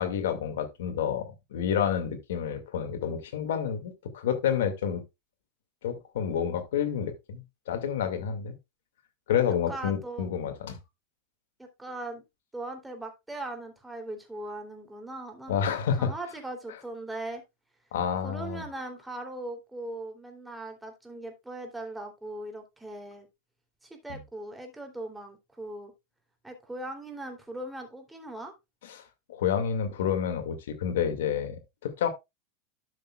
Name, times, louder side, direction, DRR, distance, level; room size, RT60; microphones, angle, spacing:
voice 1, 0.0-5.0 5.8-8.5 9.3-10.8 15.5-16.1 17.9-18.6 24.1-24.2 28.8-29.0 29.3-32.1, left 8 dB, 80° left, 2.2 m, -29 dB
voice 2, 9.7-10.3 11.8-12.2 12.5-15.6 16.0-17.4 18.2-23.3 23.8-25.9 26.4-28.5, right 2 dB, 5° right, 3.1 m, -39 dB
12.5 x 6.6 x 2.4 m
hypercardioid pair, 100°, 0 cm